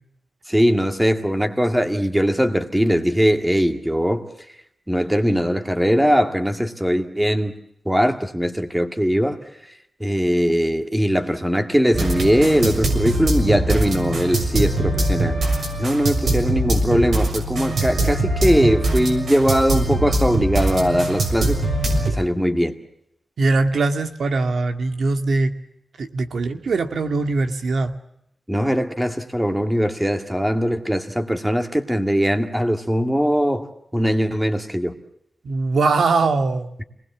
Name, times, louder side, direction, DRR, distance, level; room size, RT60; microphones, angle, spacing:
voice 1, 0.5-4.2 4.9-7.6 7.9-9.4 10.0-15.4 15.8-21.6 22.1-22.7 28.5-33.7 33.9-35.0, equal, 5° right, 2.0 m, -20 dB
sound 1, 11.9-22.1, right 2 dB, 70° right, 6.6 m, -22 dB
voice 2, 23.4-25.5 26.0-27.9 35.4-36.8, right 3 dB, 90° right, 2.0 m, -21 dB
29.0 x 20.0 x 7.3 m
wide cardioid pair, 175°, 0 cm